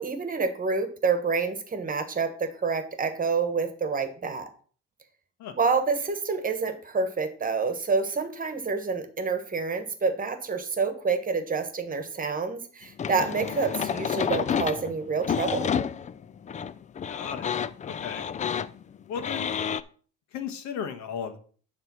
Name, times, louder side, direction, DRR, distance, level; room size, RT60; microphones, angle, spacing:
voice 1, 0.0-4.5 5.5-15.7, right 4 dB, 30° right, 9 dB, 1.3 m, -28 dB
sound 1, 13.0-19.8, left 7 dB, 25° left, 0.4 m, -30 dB
voice 2, 17.1-17.5 17.8-18.2 19.1-19.5 20.3-21.4, left 7 dB, 70° left, 7 dB, 1.4 m, -35 dB
10.0 x 3.4 x 6.1 m, 0.43 s
cardioid pair, 105°, 29 cm